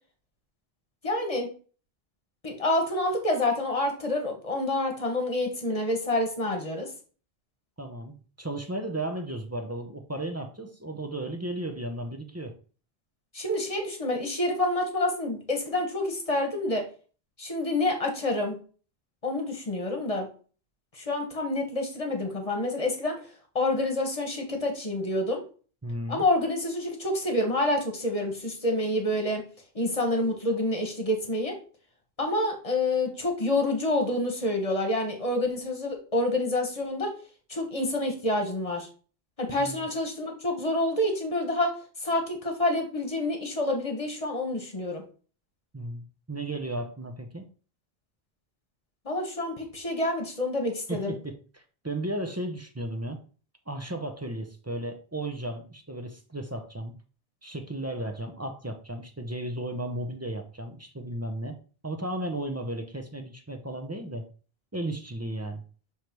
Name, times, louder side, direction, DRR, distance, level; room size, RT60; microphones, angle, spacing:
voice 1, 1.0-1.5 2.4-6.9 13.3-16.8 17.4-18.5 19.2-20.3 20.9-23.2 23.5-25.4 26.1-29.4 29.7-31.5 32.2-37.1 37.5-38.9 39.4-41.7 42.0-45.0 49.0-51.1, left 1 dB, 35° left, 3 dB, 1.5 m, -28 dB
voice 2, 7.8-12.5 25.8-26.2 39.6-39.9 45.7-47.5 50.9-53.2 53.7-56.9 57.4-61.6 61.8-64.2 64.7-65.6, right 1 dB, 15° right, 4 dB, 0.8 m, -34 dB
7.0 x 3.2 x 4.5 m, 0.39 s
omnidirectional pair, 1.1 m